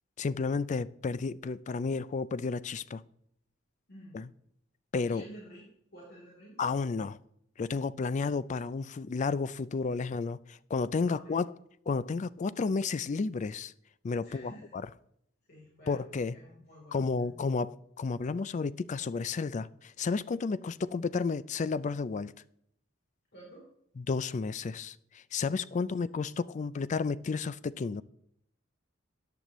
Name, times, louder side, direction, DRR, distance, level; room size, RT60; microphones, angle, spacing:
voice 1, 0.2-3.0 4.1-4.3 4.9-5.2 6.6-7.2 7.6-11.5 11.9-13.7 14.0-14.8 15.9-16.3 16.9-22.3 24.0-28.0, left 4 dB, 35° left, 0.4 m, -32 dB
voice 2, 5.1-5.6 5.9-6.6 11.0-11.4 14.2-14.7 15.5-16.0 16.4-17.5 23.3-23.7 25.8-26.0, right 1 dB, 55° left, 3.4 m, -51 dB
14.0 x 9.8 x 3.1 m
head